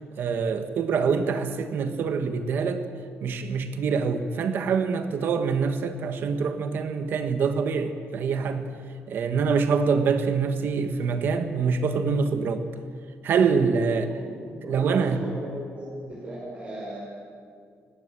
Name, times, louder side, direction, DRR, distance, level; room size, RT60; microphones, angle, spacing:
voice 1, 0.2-2.9 3.2-8.7 9.1-12.7 13.2-14.1 14.7-15.2, right 5 dB, 55° right, 8 dB, 1.6 m, -25 dB
voice 2, 14.1-15.5 15.7-17.0, right 1 dB, 30° right, -6 dB, 6.2 m, -37 dB
30.0 x 16.5 x 7.7 m, 2.2 s
cardioid pair, 170°, 4 cm